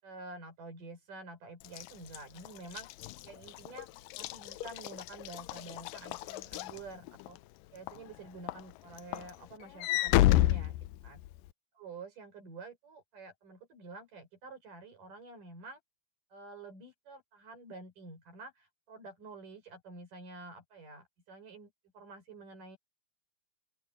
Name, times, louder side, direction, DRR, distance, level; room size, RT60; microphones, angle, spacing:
voice 1, 0.0-2.9 3.2-3.9 4.2-7.4 7.7-11.2 11.7-15.8 16.3-22.8, right 3 dB, 75° right, 7.8 m, -49 dB
Walk footsteps / Slam, 1.6-7.4 7.9-8.2 8.5-11.5, left 16 dB, 90° left, 2.3 m, -31 dB
open air
omnidirectional pair, 3.8 m